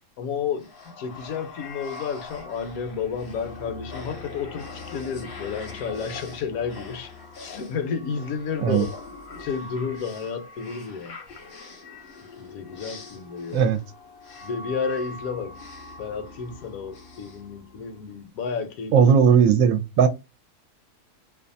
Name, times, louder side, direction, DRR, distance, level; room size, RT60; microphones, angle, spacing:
voice 1, 0.2-7.1 7.4-8.9 9.4-11.2 12.4-13.7 14.4-15.6 16.0-18.9, left 6 dB, 75° left, 1.0 m, -31 dB
sound 1, 0.6-18.2, left 3 dB, 50° left, 0.7 m, -42 dB
voice 2, 18.9-20.1, right 7 dB, 70° right, 0.9 m, -17 dB
2.6 x 2.3 x 2.5 m
omnidirectional pair, 1.6 m